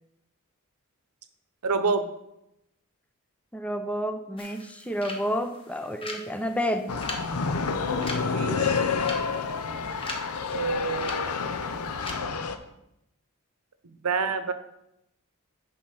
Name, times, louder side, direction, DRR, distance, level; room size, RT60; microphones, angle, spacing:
voice 1, 1.6-2.1 8.2-8.8 10.5-11.6 14.0-14.5, right 4 dB, 90° right, 10 dB, 0.8 m, -28 dB
voice 2, 3.5-6.9, equal, 5° left, 7 dB, 0.6 m, -30 dB
sound 1, 4.4-12.1, left 2 dB, 25° left, 1.2 m, -42 dB
sound 2, 6.9-12.6, left 5 dB, 85° left, 0.7 m, -29 dB
9.8 x 4.1 x 6.3 m, 0.84 s
head